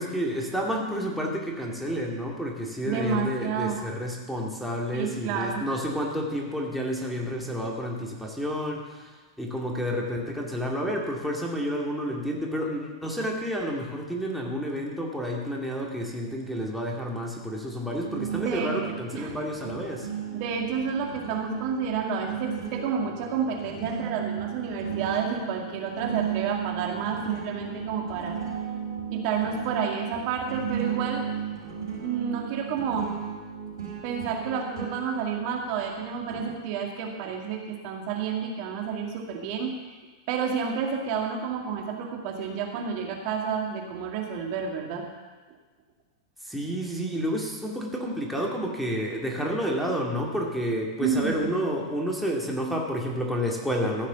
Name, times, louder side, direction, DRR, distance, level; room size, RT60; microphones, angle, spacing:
voice 1, 0.0-20.1 46.4-54.1, equal, ahead, -1 dB, 2.3 m, -30 dB
voice 2, 2.8-3.8 4.9-5.6 13.2-13.3 18.3-18.7 19.1-19.4 20.3-28.4 29.1-31.2 32.0-33.1 34.0-39.7 40.3-45.1 51.0-51.5, right 6 dB, 50° right, 0 dB, 2.1 m, -30 dB
sound 1, 18.0-36.5, right 7 dB, 75° right, 4.8 m, -35 dB
15.0 x 6.4 x 6.9 m, 1.3 s
hypercardioid pair, 105°, 2 cm